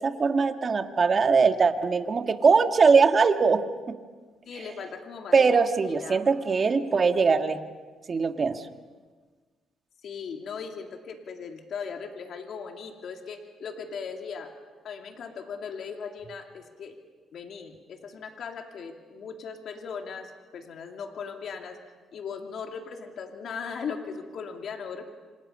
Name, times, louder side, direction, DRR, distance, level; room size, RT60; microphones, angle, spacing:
voice 1, 0.0-3.9 5.3-7.6 8.1-8.6, right 5 dB, 40° right, 7 dB, 1.7 m, -21 dB
voice 2, 4.5-5.5 6.0-6.2 10.0-14.5 14.8-17.0 17.3-21.8 22.1-25.1, left 6 dB, 65° left, 3 dB, 2.7 m, -38 dB
28.0 x 26.5 x 5.6 m, 1.4 s
cardioid pair, 90°, 0 cm